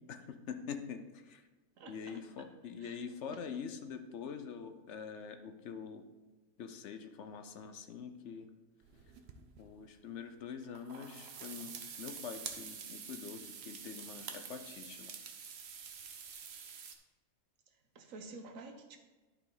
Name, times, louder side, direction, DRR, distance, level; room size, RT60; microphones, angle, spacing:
voice 1, 0.0-1.4 1.9-6.1 6.6-8.5 9.6-15.2, left 6 dB, 65° left, 1.0 m, -45 dB
voice 2, 1.8-2.5 2.8-3.0 3.3-3.4 17.9-19.0, right 3 dB, 80° right, 1.3 m, -50 dB
sound 1, 8.8-9.6 10.6-16.9, right 6 dB, 60° right, 1.0 m, -47 dB
11.5 x 4.9 x 3.9 m
omnidirectional pair, 1.4 m